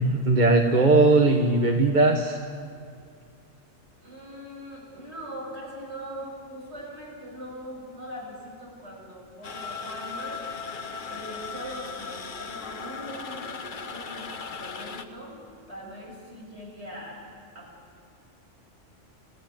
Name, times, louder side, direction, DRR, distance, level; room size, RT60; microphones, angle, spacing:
voice 1, 0.0-2.4, right 2 dB, 40° right, 3 dB, 1.4 m, -19 dB
voice 2, 4.0-10.4 11.0-15.4 15.7-17.2 17.5-17.7, equal, 60° right, -3 dB, 7.6 m, -41 dB
sound 1, 9.4-15.0, left 5 dB, 40° left, 1.2 m, -37 dB
29.0 x 16.0 x 9.4 m, 2.3 s
omnidirectional pair, 1.3 m